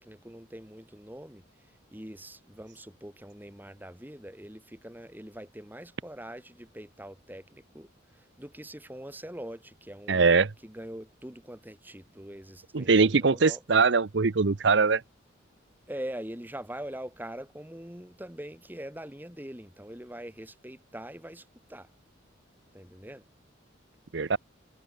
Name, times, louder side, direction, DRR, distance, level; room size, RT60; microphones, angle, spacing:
voice 1, 0.0-1.4 1.9-7.9 8.1-10.3 10.6-13.6 15.9-21.4 21.7-21.9 22.7-23.2, right 1 dB, 10° right, 2.2 m, -43 dB
voice 2, 10.1-10.5 12.7-15.0 24.1-24.4, right 4 dB, 60° right, 0.7 m, -22 dB
head